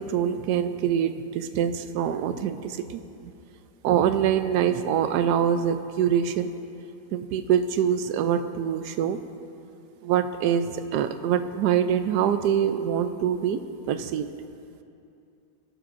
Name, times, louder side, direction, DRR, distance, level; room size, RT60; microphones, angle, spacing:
voice 1, 0.0-2.8 3.2-3.3 3.8-6.5 7.1-9.2 10.0-13.6 13.9-14.3, right 9 dB, 85° right, 10 dB, 1.2 m, -24 dB
19.0 x 11.5 x 2.5 m, 2.6 s
omnidirectional pair, 1.7 m